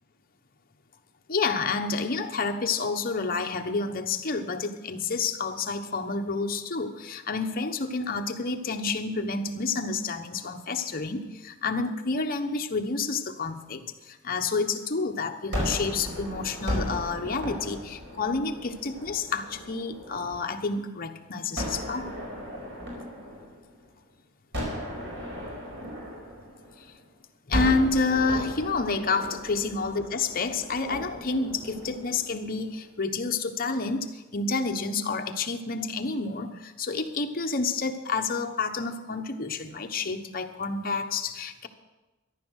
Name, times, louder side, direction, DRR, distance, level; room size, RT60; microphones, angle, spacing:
voice 1, 1.3-22.1 27.5-41.7, left 4 dB, 45° left, 5 dB, 1.1 m, -29 dB
Gunshot gunfire, 15.5-20.6 21.6-24.0 24.5-27.0 27.5-32.7, equal, 65° right, 4.8 m, -36 dB
14.0 x 11.0 x 6.4 m, 1.1 s
head